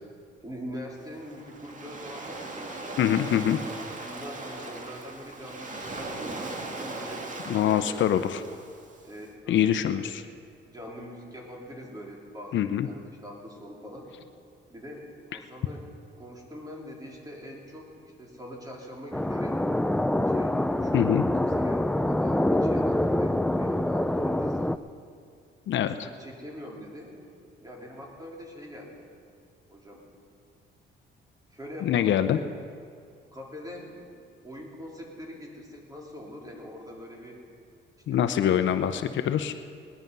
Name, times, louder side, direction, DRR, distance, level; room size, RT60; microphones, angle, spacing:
voice 1, 0.4-3.0 3.7-8.3 9.0-10.1 10.7-14.1 14.7-15.8 16.2-19.6 20.3-24.8 25.8-27.2 27.6-29.1 29.7-30.1 31.5-32.5 33.3-37.4 38.1-38.7, equal, 20° right, -2 dB, 3.7 m, -43 dB
Waves surf, 1.0-9.2, right 2 dB, 40° right, 2.1 m, -39 dB
voice 2, 3.0-3.6 7.5-8.4 9.5-10.2 12.5-12.9 20.9-21.2 25.7-26.1 31.8-32.4 38.1-39.5, left 10 dB, 70° left, 10 dB, 0.7 m, -24 dB
sound 1, 19.1-24.8, left 1 dB, 5° left, 0.4 m, -25 dB
19.5 x 11.5 x 5.5 m, 2.2 s
cardioid pair, 90°, 20 cm